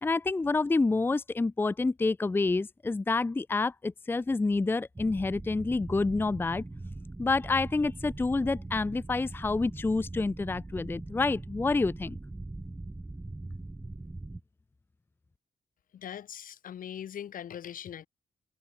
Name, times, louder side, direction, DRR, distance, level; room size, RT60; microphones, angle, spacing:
voice 1, 0.0-6.6 7.2-12.2, left 3 dB, 15° left, 0.6 m, -28 dB
sound 1, 4.9-14.4, right 2 dB, 10° right, 2.5 m, -41 dB
voice 2, 15.9-18.1, left 9 dB, 80° left, 6.4 m, -41 dB
wide cardioid pair, 175°, 14 cm